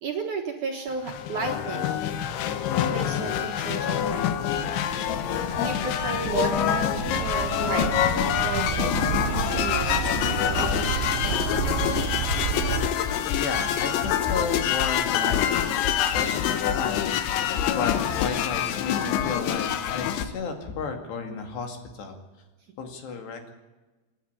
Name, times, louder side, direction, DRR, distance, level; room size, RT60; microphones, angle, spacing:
voice 1, 0.0-2.0 2.9-4.5 5.6-7.9 8.4-9.2 9.6-10.2, right 5 dB, 60° right, 2 dB, 2.3 m, -33 dB
sound 1, 0.9-20.3, left 10 dB, 90° left, 3.5 m, -26 dB
sound 2, 3.3-12.9, right 12 dB, 80° right, 2.6 m, -32 dB
voice 2, 13.3-17.0 17.3-22.2 22.8-23.5, left 5 dB, 70° left, 5 dB, 4.4 m, -33 dB
28.0 x 10.0 x 9.7 m, 1.2 s
omnidirectional pair, 5.1 m